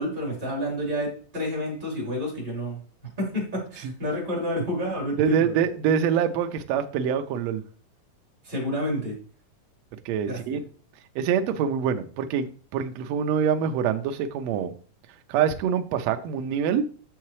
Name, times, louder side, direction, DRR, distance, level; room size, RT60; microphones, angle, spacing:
voice 1, 0.0-2.8 3.2-5.4 8.4-9.2 10.3-10.6, equal, 15° right, -3 dB, 3.1 m, -29 dB
voice 2, 5.2-7.6 10.0-10.6 11.1-14.7 15.3-16.8, right 8 dB, 80° right, 7 dB, 1.5 m, -25 dB
6.5 x 5.8 x 3.1 m, 0.40 s
omnidirectional pair, 3.7 m